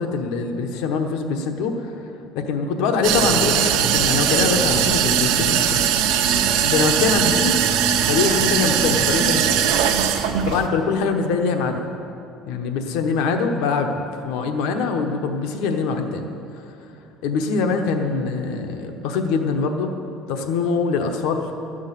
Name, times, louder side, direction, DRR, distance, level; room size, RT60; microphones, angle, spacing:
voice 1, 0.0-2.0 2.3-5.8 6.6-7.6 8.1-9.6 10.4-11.9 12.5-16.6 17.2-19.9 20.3-21.5, left 4 dB, 75° left, 5 dB, 1.0 m, -23 dB
sound 1, 3.0-10.7, right 8 dB, 70° right, 0.8 m, -20 dB
13.0 x 6.4 x 9.0 m, 2.7 s
cardioid pair, 175°, 0 cm